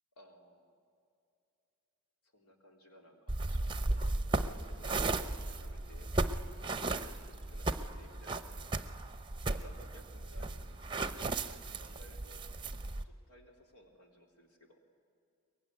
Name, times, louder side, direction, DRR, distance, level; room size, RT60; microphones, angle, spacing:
voice 1, 0.2-0.8 2.3-6.3 6.7-8.7 9.5-12.5 13.0-14.8, left 1 dB, 90° left, 2 dB, 3.6 m, -58 dB
sound 1, 3.3-13.0, right 2 dB, 20° right, 0.7 m, -36 dB
23.5 x 22.0 x 9.8 m, 2.6 s
head